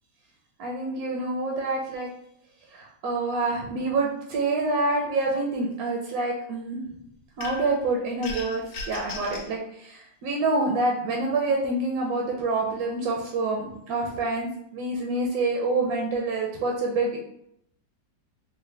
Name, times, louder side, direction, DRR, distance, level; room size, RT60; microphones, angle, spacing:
voice 1, 0.6-2.1 2.7-6.8 7.4-8.6 8.9-17.2, right 2 dB, 70° right, -1 dB, 0.9 m, -27 dB
sound 1, 7.4-7.8 8.2-9.5, left 3 dB, 80° left, 1.3 m, -36 dB
3.8 x 2.1 x 3.2 m, 0.75 s
omnidirectional pair, 2.0 m